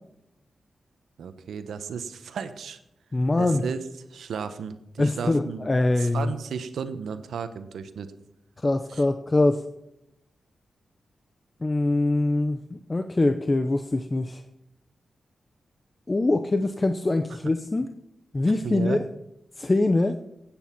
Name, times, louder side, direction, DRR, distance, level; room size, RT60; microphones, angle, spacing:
voice 1, 1.2-2.8 3.4-3.8 4.1-5.7 6.0-8.1 8.9-9.0 17.3-17.4 18.6-19.0, right 6 dB, 90° right, 11 dB, 1.0 m, -34 dB
voice 2, 3.1-3.6 5.0-6.3 8.6-9.6 11.6-14.4 16.1-17.9 18.3-19.0 19.6-20.2, left 2 dB, 30° left, 8 dB, 0.8 m, -23 dB
16.5 x 8.9 x 6.0 m, 0.84 s
cardioid pair, 75°, 0 cm